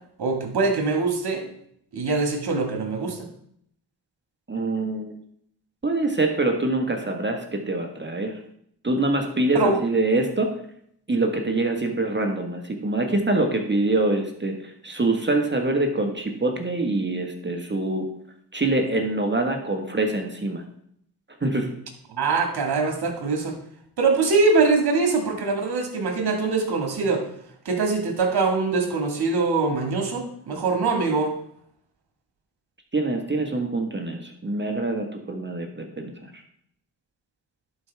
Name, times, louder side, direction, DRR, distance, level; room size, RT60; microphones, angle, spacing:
voice 1, 0.2-1.5 1.9-3.2 9.5-9.8 22.1-23.5 24.0-27.2 27.7-31.3, right 4 dB, 65° right, 3 dB, 2.0 m, -23 dB
voice 2, 4.5-5.1 5.8-8.3 8.8-10.5 11.1-14.5 14.8-18.1 18.5-20.6 21.4-21.7 32.9-36.1, right 2 dB, 25° right, 4 dB, 1.4 m, -24 dB
11.0 x 4.7 x 3.5 m, 0.69 s
supercardioid pair, 45°, 42 cm